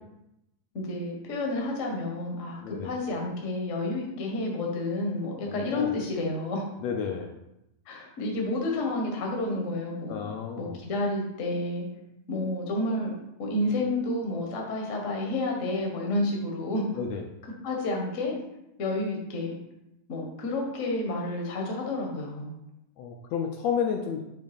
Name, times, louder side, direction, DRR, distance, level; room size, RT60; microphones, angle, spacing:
voice 1, 0.7-6.7 7.9-10.2 10.6-11.9 12.3-13.1 13.4-16.9 17.6-18.4 18.8-19.5 20.1-22.5, left 2 dB, 40° left, 0 dB, 1.0 m, -30 dB
voice 2, 5.5-6.0 6.8-7.3 10.1-10.8 17.0-17.2 23.0-24.2, left 7 dB, 75° left, 2 dB, 1.7 m, -31 dB
8.9 x 3.2 x 5.2 m, 0.87 s
omnidirectional pair, 3.3 m